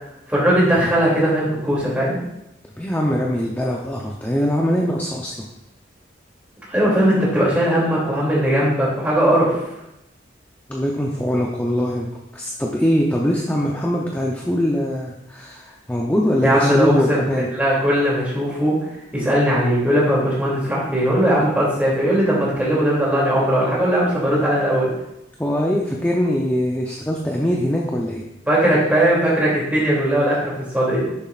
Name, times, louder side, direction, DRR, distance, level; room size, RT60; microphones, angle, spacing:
voice 1, 0.3-2.2 6.7-9.6 16.4-18.7 19.1-24.9 28.5-31.1, equal, 10° right, -6 dB, 2.7 m, -19 dB
voice 2, 2.8-5.5 10.7-12.1 12.3-17.5 25.4-28.2, equal, 10° left, -2 dB, 0.6 m, -22 dB
10.0 x 7.0 x 2.5 m, 0.88 s
head